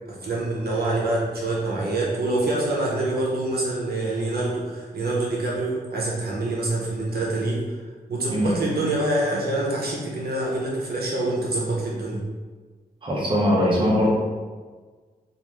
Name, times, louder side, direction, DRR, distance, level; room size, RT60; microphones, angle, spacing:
voice 1, 0.1-7.8 8.1-12.2, right 2 dB, 75° right, -4 dB, 0.7 m, -26 dB
voice 2, 13.0-14.1, equal, 30° right, -5 dB, 0.6 m, -21 dB
2.4 x 2.3 x 3.0 m, 1.4 s
wide cardioid pair, 105°, 16 cm